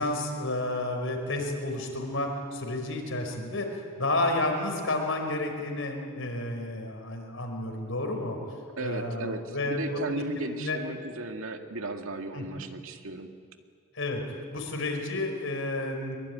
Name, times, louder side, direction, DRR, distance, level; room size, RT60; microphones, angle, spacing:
voice 1, 0.0-8.4 8.8-10.8 12.3-12.7 13.9-14.2 14.5-16.2, left 2 dB, 65° left, 3 dB, 5.1 m, -31 dB
voice 2, 8.8-13.3, right 2 dB, 75° right, 5 dB, 2.0 m, -35 dB
24.0 x 23.5 x 9.6 m, 2.2 s
head